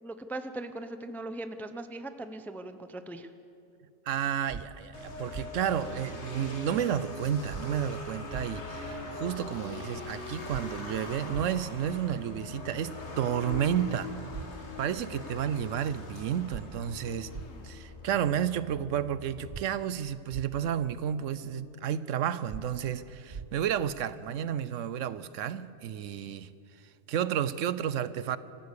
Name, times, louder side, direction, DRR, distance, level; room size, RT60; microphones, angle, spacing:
voice 1, 0.0-3.3, right 2 dB, ahead, 9 dB, 0.5 m, -39 dB
voice 2, 4.1-14.1 14.8-17.3 17.6-26.5 27.1-28.4, right 9 dB, 75° right, 16 dB, 1.0 m, -31 dB
sound 1, 4.5-4.6 5.3-5.5 7.5-7.6 8.3-8.4 10.5-10.6 11.3-11.5 13.5-13.6 14.3-14.5 16.5-16.6 17.3-17.5 19.5-19.6 20.3-20.4 22.5-22.6 23.3-23.4, right 6 dB, 40° right, 0.7 m, -39 dB
sound 2, 4.9-18.0, left 2 dB, 60° left, 2.2 m, -42 dB
sound 3, 5.1-19.6, left 4 dB, 80° left, 1.8 m, -48 dB
26.5 x 14.5 x 6.7 m, 2.7 s
omnidirectional pair, 1.3 m